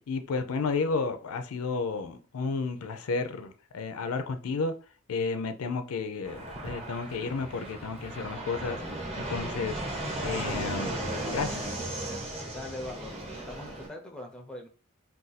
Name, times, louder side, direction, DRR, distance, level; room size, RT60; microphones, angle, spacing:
voice 1, 0.1-4.7 5.1-8.8 9.2-9.8 10.2-11.7, left 4 dB, 80° left, 0.4 m, -32 dB
Fixed-wing aircraft airplane, 6.2-13.9, right 1 dB, 25° right, 0.8 m, -36 dB
voice 2, 12.5-13.1 13.5-14.7, left 2 dB, 5° left, 0.4 m, -41 dB
2.5 x 2.3 x 4.0 m
head